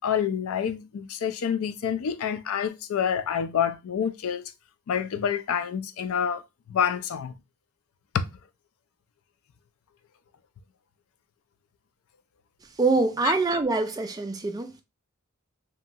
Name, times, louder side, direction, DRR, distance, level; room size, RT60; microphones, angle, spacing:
voice 1, 0.0-4.5 4.9-7.4 8.1-8.2 13.2-13.3, left 8 dB, 70° left, 0.3 m, -27 dB
voice 2, 12.8-14.8, right 3 dB, 15° right, 0.3 m, -25 dB
2.9 x 2.7 x 2.2 m
head